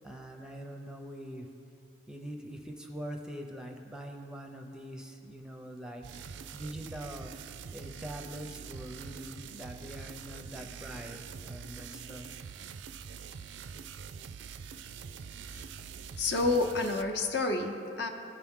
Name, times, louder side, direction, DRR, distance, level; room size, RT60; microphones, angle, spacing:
voice 1, 0.0-1.5 2.1-7.3 7.7-12.3, equal, 5° right, 2 dB, 0.6 m, -43 dB
sound 1, 6.0-17.0, right 6 dB, 65° right, 0.4 m, -45 dB
voice 2, 16.2-18.1, left 3 dB, 60° left, 3 dB, 0.8 m, -29 dB
16.5 x 5.9 x 3.6 m, 2.7 s
head